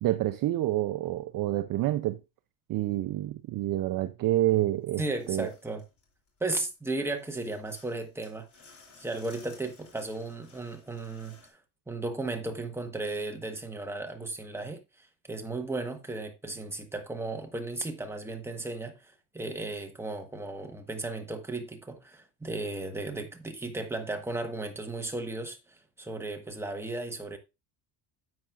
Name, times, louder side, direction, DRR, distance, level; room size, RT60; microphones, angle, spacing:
voice 1, 0.0-2.2 2.7-5.0 5.3-5.5, right 15 dB, 45° right, 0.5 m, -28 dB
sound 1, 4.9-6.4 6.7-11.5, left 4 dB, 40° left, 3.0 m, -57 dB
voice 2, 5.0-5.8 6.4-8.5 9.0-11.4 11.9-27.4, right 2 dB, 5° right, 1.2 m, -35 dB
10.5 x 7.4 x 2.4 m
cardioid pair, 140°, 46 cm